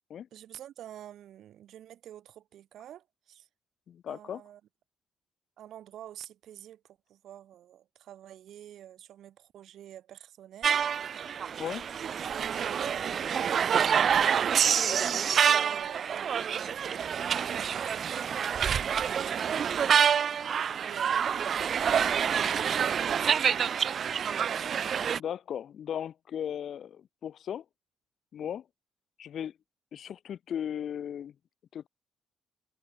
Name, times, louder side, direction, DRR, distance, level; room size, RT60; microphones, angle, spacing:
voice 1, 0.3-3.5 4.1-4.6 5.6-11.4 12.0-20.0 20.8-21.3 22.8-23.6, right 11 dB, 75° right, 7.1 m, -48 dB
voice 2, 3.9-4.4 11.6-11.9 25.2-27.6 28.3-28.7 29.2-29.6 29.9-31.3 31.7-31.9, left 9 dB, 60° left, 2.5 m, -36 dB
sound 1, 10.6-25.2, right 7 dB, 55° right, 0.5 m, -27 dB
cardioid pair, 90°, 0 cm